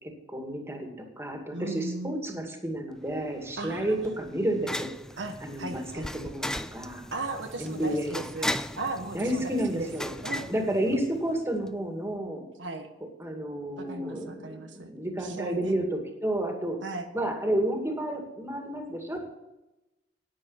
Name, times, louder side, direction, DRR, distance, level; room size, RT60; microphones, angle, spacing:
voice 1, 0.0-4.9 5.4-6.4 6.7-7.0 7.6-8.1 9.1-10.1 10.5-12.4 13.2-16.8 17.1-19.2, right 1 dB, 15° right, 2 dB, 2.2 m, -31 dB
voice 2, 1.5-2.1 3.6-4.2 5.2-6.3 7.1-8.5 8.8-9.9 10.2-10.5 12.6-12.9 13.8-14.9 15.2-15.7 16.8-17.1, right 2 dB, 80° right, 5 dB, 1.3 m, -37 dB
sound 1, 3.1-11.4, left 1 dB, 5° left, 0.4 m, -37 dB
10.5 x 9.5 x 7.4 m, 0.97 s
head